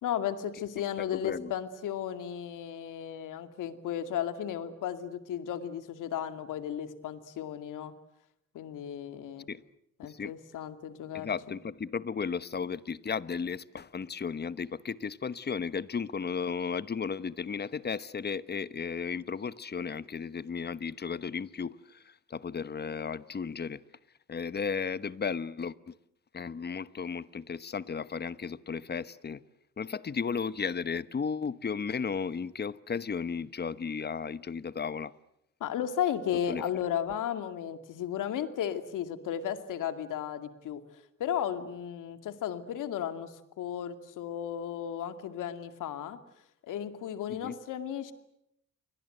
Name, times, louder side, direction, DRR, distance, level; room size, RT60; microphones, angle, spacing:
voice 1, 0.0-7.9 8.5-9.5 10.0-11.3 35.6-40.8 41.2-46.2 46.6-48.1, left 9 dB, 85° left, 2.4 m, -34 dB
voice 2, 11.1-23.8 24.3-25.9 26.3-29.4 29.8-35.1 36.5-36.6 47.4-47.6, left 6 dB, 35° left, 1.1 m, -34 dB
29.0 x 24.0 x 7.9 m
cardioid pair, 90°, 31 cm